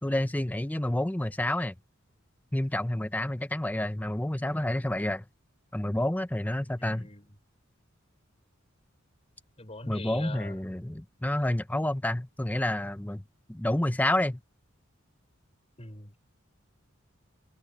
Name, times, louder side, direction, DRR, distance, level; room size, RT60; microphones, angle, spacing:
voice 1, 0.0-1.7 2.5-5.2 5.7-7.1 9.9-13.2 13.5-14.4, left 1 dB, 10° left, 0.6 m, -29 dB
voice 2, 6.8-7.3 9.6-10.5 15.8-16.2, left 2 dB, 30° left, 5.1 m, -42 dB
head